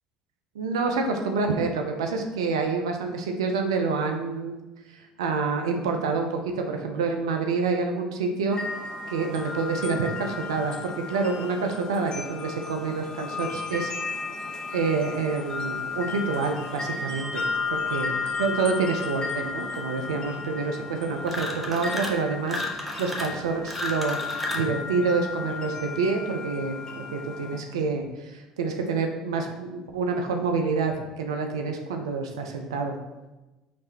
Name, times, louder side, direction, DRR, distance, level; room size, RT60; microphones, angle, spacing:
voice 1, 0.5-4.6 4.9-8.6 9.1-13.9 14.7-17.4 17.7-24.2 24.5-33.0, right 4 dB, 80° right, 4 dB, 0.5 m, -27 dB
sound 1, 8.5-27.6, left 4 dB, 30° left, 0.8 m, -34 dB
sound 2, 21.2-22.2 22.5-24.7, left 1 dB, 5° right, 0.9 m, -33 dB
5.1 x 3.2 x 2.8 m, 1.1 s
hypercardioid pair, 65°, 3 cm